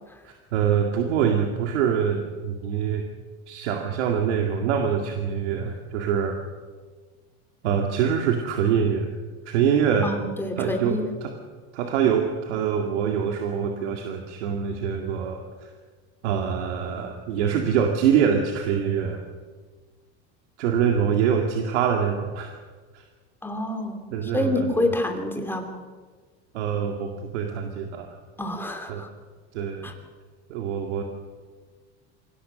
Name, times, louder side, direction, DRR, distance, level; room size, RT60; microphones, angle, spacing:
voice 1, 0.3-3.0 3.5-6.4 7.6-9.1 9.5-10.1 10.6-11.3 11.7-15.7 16.2-19.2 20.6-22.5 22.9-23.0 24.1-24.9 26.5-28.1 28.9-29.0 29.5-29.9 30.5-31.0, right 7 dB, 90° right, 3 dB, 2.2 m, -24 dB
voice 2, 10.0-11.1 23.4-25.8 28.4-29.1 29.8-29.9, left 1 dB, 5° left, 4 dB, 3.0 m, -27 dB
25.0 x 17.0 x 6.4 m, 1.5 s
supercardioid pair, 115°, 34 cm